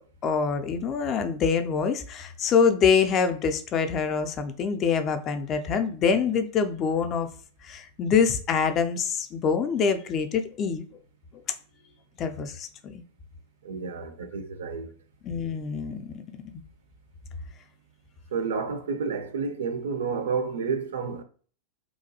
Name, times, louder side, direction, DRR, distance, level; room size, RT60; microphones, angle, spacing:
voice 1, 0.2-7.3 7.6-10.9 12.2-13.0 15.2-16.2 16.5-16.6, left 6 dB, 30° left, 0.3 m, -25 dB
voice 2, 13.6-14.9 18.3-21.2, right 5 dB, 65° right, 0.4 m, -30 dB
2.8 x 2.2 x 2.7 m
figure-of-eight pair, 90°, 0 cm